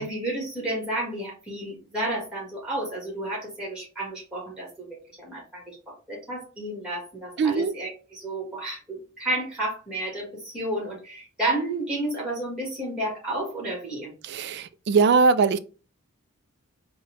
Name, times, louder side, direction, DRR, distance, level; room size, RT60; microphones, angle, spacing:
voice 1, 0.0-4.9 5.2-14.1, right 1 dB, 5° right, 1.4 m, -31 dB
voice 2, 7.4-7.7 14.2-15.6, right 4 dB, 55° right, 0.3 m, -21 dB
4.1 x 2.2 x 3.7 m
head